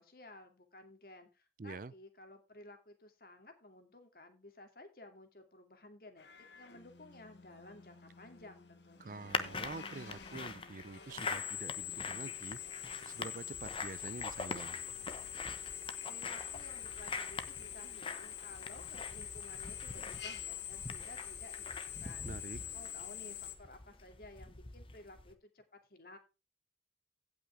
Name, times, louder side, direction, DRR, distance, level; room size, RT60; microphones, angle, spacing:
voice 1, 0.0-6.3 6.5-9.2 16.0-22.3 22.7-26.2, left 2 dB, 55° left, 2.4 m, -55 dB
voice 2, 1.6-1.9 9.0-12.6 13.1-14.8 22.2-22.6, right 3 dB, 50° right, 0.5 m, -46 dB
Drill, 6.2-23.5, left 10 dB, 80° left, 1.6 m, -46 dB
sound 1, 9.3-25.3, left 4 dB, 30° left, 1.0 m, -44 dB
16.5 x 6.0 x 3.4 m
head